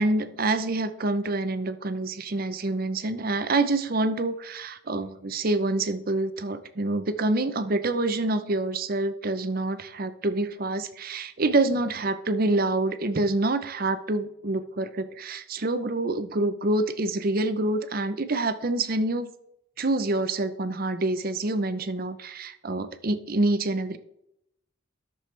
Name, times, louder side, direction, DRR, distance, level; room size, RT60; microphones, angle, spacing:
voice 1, 0.0-19.3 19.8-24.0, right 2 dB, 45° right, 11 dB, 0.7 m, -26 dB
10.5 x 6.8 x 3.3 m, 0.77 s
head